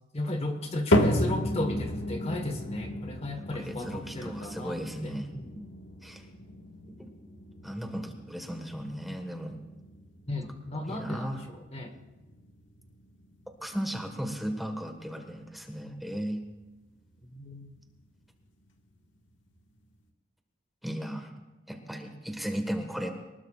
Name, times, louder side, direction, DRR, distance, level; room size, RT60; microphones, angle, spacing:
voice 1, 0.1-5.7 10.3-11.9 17.3-17.7, left 1 dB, 35° left, 5 dB, 1.3 m, -35 dB
sound 1, 0.9-17.2 17.6-18.1 18.7-18.8 19.6-19.7, left 1 dB, 75° left, 1.7 m, -34 dB
voice 2, 3.6-5.3 6.0-6.2 7.6-9.6 10.9-11.4 13.6-16.4 20.8-21.3 21.7-23.1, equal, ahead, 3 dB, 1.5 m, -35 dB
23.5 x 20.0 x 2.5 m, 1.1 s
head